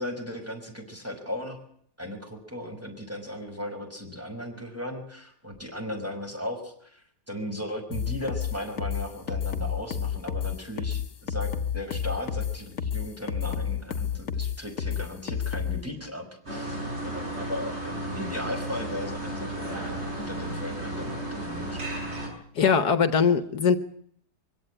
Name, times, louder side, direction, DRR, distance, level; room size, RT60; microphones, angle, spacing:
voice 1, 0.0-1.6 2.0-7.0 7.3-16.8 17.1-22.1, left 1 dB, 10° right, 5.2 m, -36 dB
sound 1, 7.9-15.8, left 8 dB, 55° left, 1.6 m, -30 dB
sound 2, 16.5-22.3, right 1 dB, 40° right, 7.0 m, -34 dB
voice 2, 22.6-23.8, left 6 dB, 70° left, 1.8 m, -21 dB
23.5 x 17.0 x 9.1 m
omnidirectional pair, 1.8 m